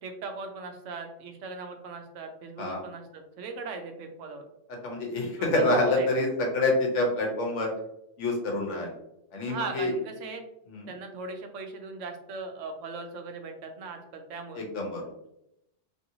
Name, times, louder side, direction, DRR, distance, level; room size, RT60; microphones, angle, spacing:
voice 1, 0.0-4.4 5.4-6.1 9.5-10.4 10.9-14.6, right 4 dB, 80° right, 5 dB, 0.9 m, -39 dB
voice 2, 4.8-7.7 8.2-8.9 9.3-9.9 10.7-10.9 14.6-15.0, left 2 dB, 80° left, 0 dB, 1.2 m, -27 dB
3.0 x 2.8 x 2.6 m, 0.82 s
omnidirectional pair, 1.2 m